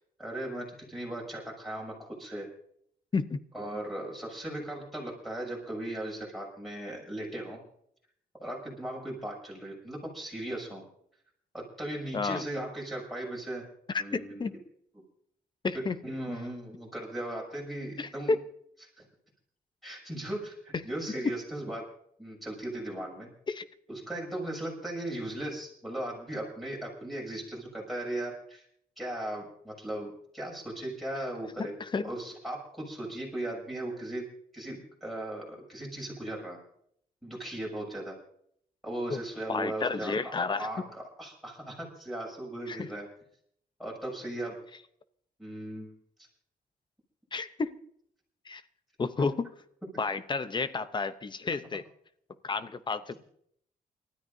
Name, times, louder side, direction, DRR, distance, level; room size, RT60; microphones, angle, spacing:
voice 1, 0.2-2.5 3.5-7.6 8.4-10.8 11.5-13.6 14.0-14.5 15.7-18.4 19.0-19.1 19.8-21.8 22.2-23.3 23.9-28.6 29.0-31.8 32.0-34.3 34.5-36.6 37.2-38.2 38.8-43.1 43.8-44.6 45.4-45.9 49.2-49.3, right 1 dB, ahead, -1 dB, 6.9 m, -37 dB
voice 2, 13.9-14.5 15.6-16.0 18.0-18.4 23.5-23.7 31.6-31.7 31.9-32.1 39.1-39.2 39.5-40.7 42.7-42.9 47.3-47.8 48.5-48.6 49.0-49.5 50.0-51.8 52.4-53.1, left 4 dB, 30° left, 13 dB, 0.6 m, -31 dB
29.0 x 13.5 x 2.7 m, 0.68 s
wide cardioid pair, 145°, 16 cm